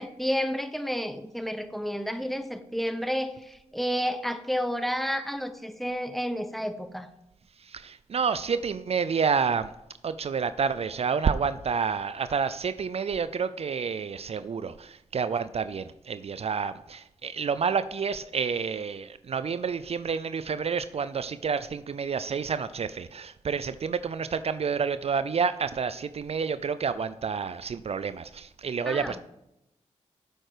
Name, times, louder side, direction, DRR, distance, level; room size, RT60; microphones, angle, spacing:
voice 1, 0.0-7.1 28.9-29.2, equal, ahead, 10 dB, 0.9 m, -31 dB
voice 2, 7.6-9.7 10.0-29.2, right 6 dB, 55° right, 13 dB, 0.5 m, -29 dB
8.9 x 7.7 x 5.0 m, 0.85 s
cardioid pair, 50°, 12 cm